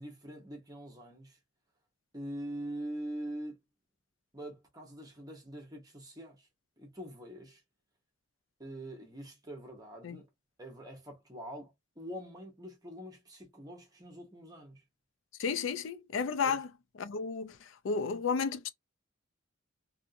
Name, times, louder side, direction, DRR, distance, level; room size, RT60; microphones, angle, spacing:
voice 1, 0.0-1.4 2.1-3.5 4.3-6.5 6.8-7.6 8.6-10.3 10.6-14.8 16.4-16.6, right 1 dB, 20° right, 1.0 m, -44 dB
voice 2, 15.4-16.7 17.0-17.6 17.8-18.7, left 5 dB, 75° left, 0.4 m, -32 dB
2.8 x 2.6 x 2.5 m
head